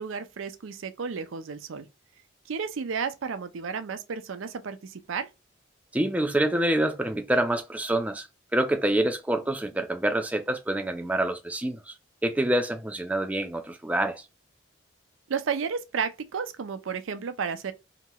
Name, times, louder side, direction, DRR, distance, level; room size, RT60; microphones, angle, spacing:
voice 1, 0.0-1.9 2.5-5.3 15.3-17.7, right 6 dB, 80° right, 0.5 m, -32 dB
voice 2, 5.9-8.3 8.5-11.9 12.2-14.2, right 1 dB, 5° right, 0.3 m, -26 dB
2.9 x 2.8 x 2.2 m
head